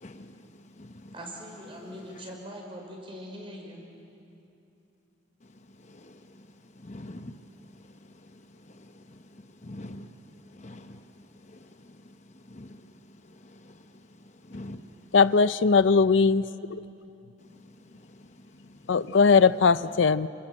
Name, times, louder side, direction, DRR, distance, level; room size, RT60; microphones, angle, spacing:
voice 1, 0.0-0.3 0.8-0.9 5.9-6.2 6.8-7.3 9.6-10.1 10.6-11.0 11.5-11.6 12.5-12.8 13.6-13.7 14.5-14.8, left 1 dB, 35° left, 0.9 m, -42 dB
voice 2, 1.1-3.9, equal, 30° right, 5.4 m, -41 dB
voice 3, 15.1-16.4 16.7-16.8 18.9-20.3, left 5 dB, 75° left, 0.5 m, -20 dB
28.0 x 26.0 x 7.8 m
head